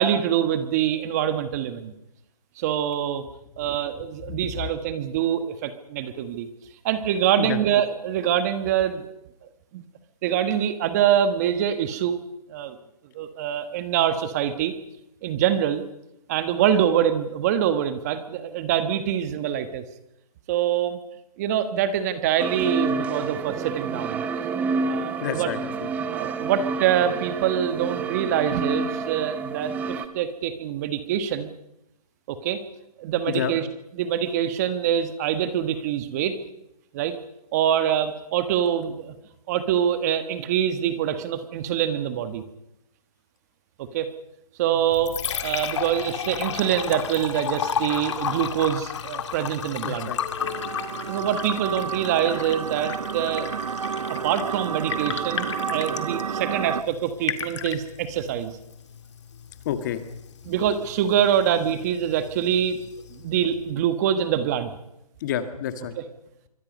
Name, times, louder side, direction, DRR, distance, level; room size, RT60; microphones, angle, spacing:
voice 1, 0.0-1.9 2.6-3.2 3.6-6.5 6.8-9.1 9.7-9.8 10.2-12.2 12.5-12.8 13.1-14.7 15.2-15.8 16.3-19.8 20.5-21.0 21.4-24.2 24.8-25.5 26.1-31.5 32.3-32.6 33.0-33.7 34.0-36.4 36.9-37.2 37.5-39.1 39.5-42.4 43.8-44.1 44.6-45.1 45.4-50.1 51.1-53.5 54.1-58.6 60.4-62.8 63.1-64.7 66.0-66.1, right 9 dB, 25° right, 10 dB, 1.4 m, -25 dB
voice 2, 4.2-4.6 7.4-7.6 25.2-25.9 33.3-33.5 49.8-50.2 59.6-60.0 65.2-65.9, left 10 dB, 30° left, 10 dB, 1.7 m, -29 dB
sound 1, 22.4-30.1, right 4 dB, 10° right, 0.7 m, -29 dB
Liquid, 44.7-63.7, left 8 dB, 45° left, 2.1 m, -34 dB
sound 2, 50.4-56.8, right 7 dB, 70° right, 0.8 m, -30 dB
27.0 x 24.0 x 5.4 m, 0.85 s
hypercardioid pair, 155°, 20 cm